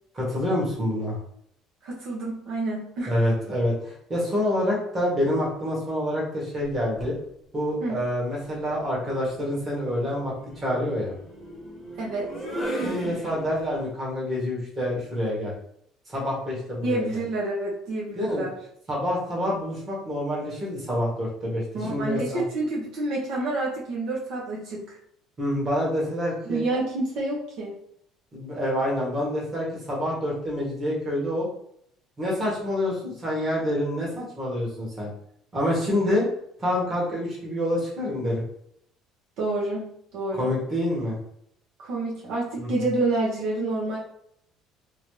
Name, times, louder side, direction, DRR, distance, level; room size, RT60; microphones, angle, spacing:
voice 1, 0.1-1.2 3.1-7.1 7.5-11.1 12.8-15.5 16.1-17.1 18.1-18.4 18.9-22.4 25.4-26.6 28.3-31.5 32.2-35.1 35.5-36.2 36.6-38.4 40.3-41.2 42.6-42.7, left 1 dB, 25° right, -5 dB, 1.4 m, -27 dB
voice 2, 1.8-3.1 7.8-8.0 12.0-12.3 16.8-18.5 21.7-25.0 26.5-27.7 39.4-40.5 41.8-44.0, right 2 dB, 65° right, -4 dB, 0.9 m, -28 dB
sound 1, 7.0-7.2 8.6-13.8, right 1 dB, ahead, 1.0 m, -36 dB
3.1 x 2.6 x 3.1 m, 0.70 s
cardioid pair, 140°, 0 cm